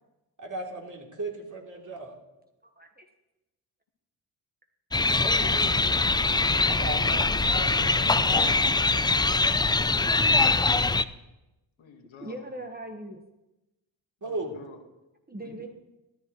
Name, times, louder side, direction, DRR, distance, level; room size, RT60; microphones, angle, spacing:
voice 1, 0.4-2.1 6.7-7.2 7.5-7.6 14.2-14.5, right 2 dB, 40° right, 0 dB, 3.1 m, -35 dB
voice 2, 2.6-3.0 5.2-5.8 12.2-13.2 15.3-15.7, right 1 dB, 20° right, 3 dB, 1.3 m, -39 dB
sound 1, 4.9-11.0, left 3 dB, 10° left, 0.3 m, -23 dB
voice 3, 6.8-8.6 11.8-12.5 14.2-14.8 15.4-15.6, left 5 dB, 75° left, 4 dB, 1.7 m, -44 dB
13.5 x 11.5 x 3.1 m, 0.99 s
supercardioid pair, 50°, 48 cm